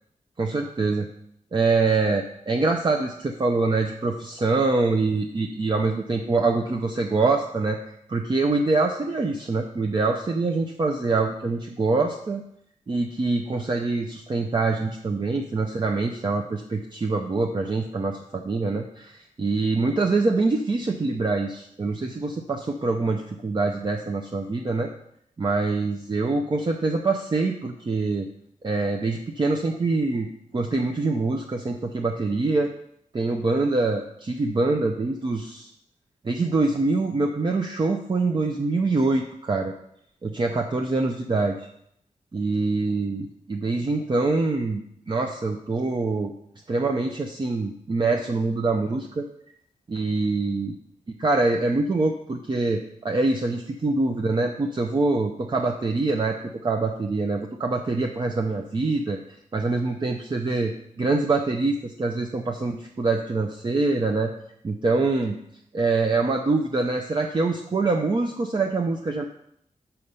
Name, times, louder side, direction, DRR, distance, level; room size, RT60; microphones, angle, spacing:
voice 1, 0.4-1.1 1.5-7.8 8.1-12.4 12.9-24.9 25.4-28.3 28.6-30.3 30.5-32.7 33.1-35.7 36.2-39.7 40.2-41.7 42.3-46.3 46.7-49.3 49.9-50.7 51.2-59.2 59.5-64.3 64.6-65.4 65.7-69.2, right 3 dB, 35° right, 3 dB, 0.6 m, -24 dB
6.6 x 5.6 x 5.5 m, 0.71 s
wide cardioid pair, 125°, 13 cm